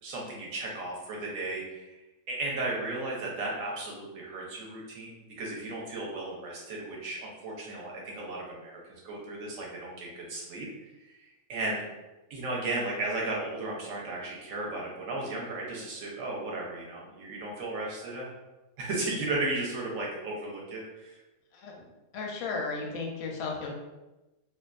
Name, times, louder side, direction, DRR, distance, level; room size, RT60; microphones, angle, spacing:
voice 1, 0.0-1.9 2.3-10.7 11.0-11.9 12.3-18.3 18.8-21.2, right 2 dB, 75° right, -3 dB, 0.9 m, -35 dB
voice 2, 22.1-23.7, left 4 dB, 65° left, 0 dB, 0.7 m, -34 dB
2.6 x 2.2 x 2.3 m, 1.0 s
omnidirectional pair, 1.5 m